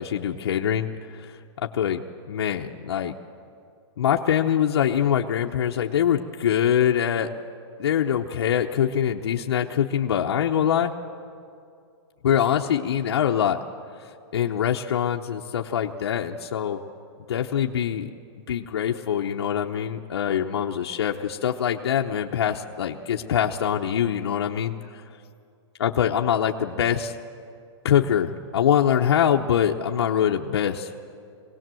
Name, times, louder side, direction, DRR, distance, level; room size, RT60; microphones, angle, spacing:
voice 1, 0.0-2.0 2.3-3.1 4.0-7.3 7.8-10.9 12.2-13.6 14.3-16.8 17.3-18.1 18.5-25.0 25.8-27.2 27.8-30.9, left 9 dB, 60° left, 1 dB, 0.9 m, -24 dB
22.0 x 18.0 x 7.6 m, 2.4 s
hypercardioid pair, 180°, 15 cm